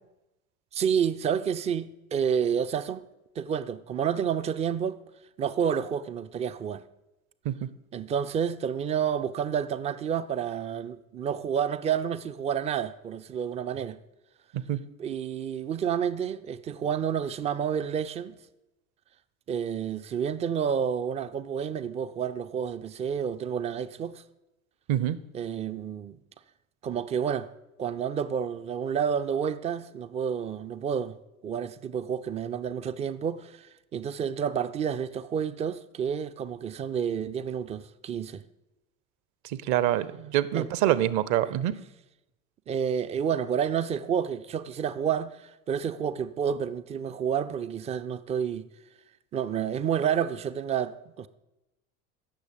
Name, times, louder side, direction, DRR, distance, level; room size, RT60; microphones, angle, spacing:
voice 1, 0.7-3.1 3.4-5.0 5.4-6.8 7.9-14.0 15.0-18.3 19.5-24.2 25.3-26.2 26.8-27.5 27.8-31.2 31.4-33.7 33.9-38.4 40.5-41.0 41.4-41.5 42.7-48.6 49.3-51.3, right 8 dB, 15° right, 0.3 m, -29 dB
voice 2, 39.4-41.8, right 12 dB, 45° right, 0.7 m, -26 dB
16.0 x 6.5 x 5.1 m
figure-of-eight pair, 65°, 42 cm